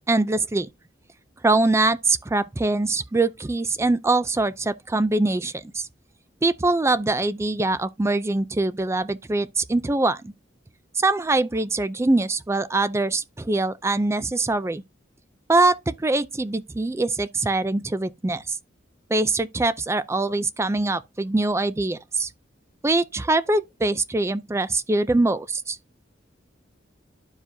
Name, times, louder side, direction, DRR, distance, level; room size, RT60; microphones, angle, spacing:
voice 1, 0.1-0.7 1.4-5.9 6.4-10.3 10.9-14.8 15.5-18.6 19.1-22.3 22.8-25.8, right 2 dB, 15° right, 0.4 m, -23 dB
12.5 x 4.8 x 2.7 m
head